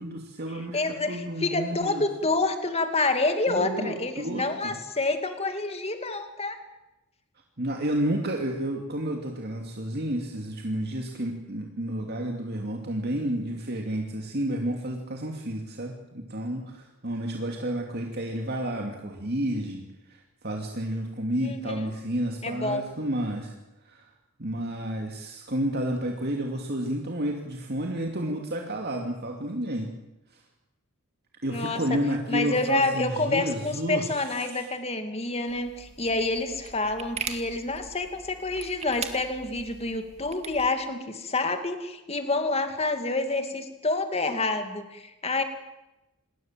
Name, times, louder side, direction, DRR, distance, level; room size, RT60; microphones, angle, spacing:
voice 1, 0.0-2.1 3.5-4.8 7.6-23.5 23.8-24.1 24.4-29.9 30.3-30.4 31.4-34.7, right 1 dB, 45° right, 2 dB, 2.7 m, -31 dB
voice 2, 0.7-6.6 21.4-21.7 22.4-22.9 31.5-31.8 32.3-45.4, left 2 dB, 30° left, 7 dB, 2.5 m, -28 dB
sound 1, 35.5-40.7, right 6 dB, 30° right, 2.0 m, -40 dB
28.0 x 21.0 x 7.6 m, 1.0 s
head